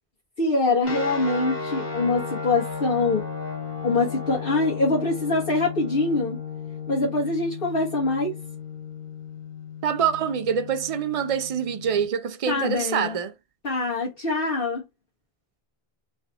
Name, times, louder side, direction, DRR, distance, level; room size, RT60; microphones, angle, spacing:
voice 1, 0.4-3.2 3.8-6.4 6.9-8.3 12.5-13.2 13.6-14.8, left 3 dB, 65° left, 1.2 m, -24 dB
sound 1, 0.8-12.0, left 5 dB, 45° left, 1.5 m, -35 dB
voice 2, 9.8-13.3, right 8 dB, 50° right, 0.4 m, -25 dB
3.2 x 2.6 x 3.3 m
omnidirectional pair, 1.0 m